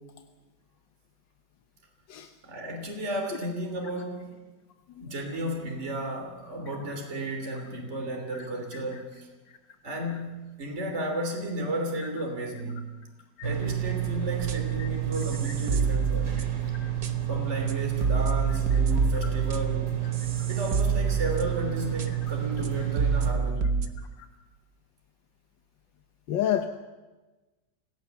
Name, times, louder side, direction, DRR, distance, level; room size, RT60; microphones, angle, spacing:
voice 1, 2.4-4.3 5.0-9.3 9.8-12.9 13.4-16.4 17.3-19.9 20.5-23.8, right 1 dB, 40° right, 2 dB, 3.5 m, -33 dB
sound 1, 13.4-23.3, right 12 dB, 85° right, 3.3 m, -30 dB
sound 2, 14.4-14.8 15.1-16.6 17.0-17.1 17.7-17.8 18.0-21.7 22.0-22.1 22.6-22.7 23.0-23.9, right 4 dB, 55° right, 1.7 m, -28 dB
voice 2, 26.3-26.7, left 11 dB, 85° left, 7 dB, 1.7 m, -29 dB
27.5 x 17.0 x 7.1 m, 1.2 s
omnidirectional pair, 1.9 m